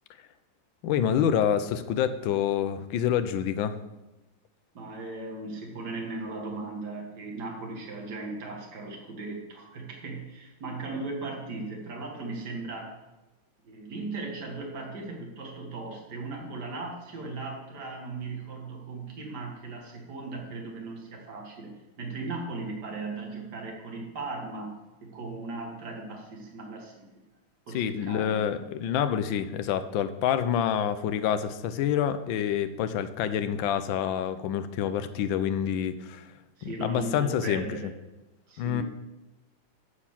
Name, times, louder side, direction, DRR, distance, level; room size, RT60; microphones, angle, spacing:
voice 1, 0.8-3.8 27.7-36.3 36.6-37.6 38.6-38.8, left 9 dB, 75° left, 11 dB, 1.4 m, -27 dB
voice 2, 4.7-13.0 13.6-27.1 27.7-28.7 36.6-37.9 38.5-38.8, right 3 dB, 55° right, 0 dB, 2.3 m, -37 dB
11.5 x 4.4 x 7.3 m, 1.0 s
omnidirectional pair, 2.3 m